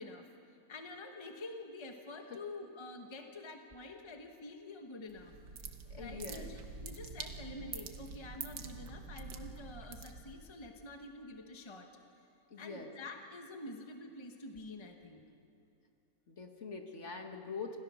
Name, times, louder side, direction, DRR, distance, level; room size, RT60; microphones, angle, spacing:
voice 1, 0.0-5.7 5.9-11.9 12.6-15.2, left 2 dB, 20° left, 4 dB, 1.2 m, -48 dB
sound 1, 5.1-10.5, right 5 dB, 85° right, 1.7 m, -46 dB
voice 2, 5.9-6.5 12.5-12.9 16.3-17.8, left 4 dB, 50° left, 4 dB, 1.9 m, -44 dB
27.5 x 16.5 x 6.4 m, 2.6 s
omnidirectional pair, 1.6 m